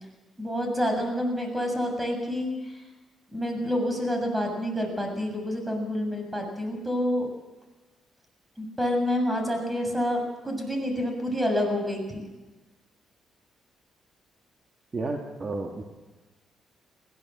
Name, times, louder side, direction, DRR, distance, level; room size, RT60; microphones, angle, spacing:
voice 1, 0.4-2.8 3.3-7.3 8.6-12.3, left 1 dB, 10° right, 4 dB, 7.2 m, -28 dB
voice 2, 14.9-15.8, right 3 dB, 35° right, 2 dB, 2.3 m, -31 dB
22.0 x 16.5 x 7.6 m, 1.2 s
cardioid pair, 90°, 0 cm